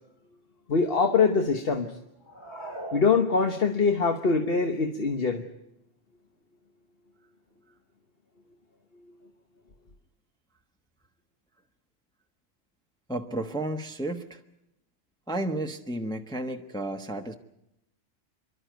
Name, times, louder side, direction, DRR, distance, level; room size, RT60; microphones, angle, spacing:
voice 1, 0.7-1.9 2.9-5.4, left 4 dB, 45° left, 5 dB, 1.3 m, -23 dB
sound 1, 2.2-3.9, right 1 dB, 20° left, 2.4 m, -40 dB
voice 2, 13.1-14.4 15.3-17.3, right 1 dB, 5° left, 4 dB, 1.1 m, -32 dB
28.5 x 12.0 x 9.3 m, 0.84 s
omnidirectional pair, 1.4 m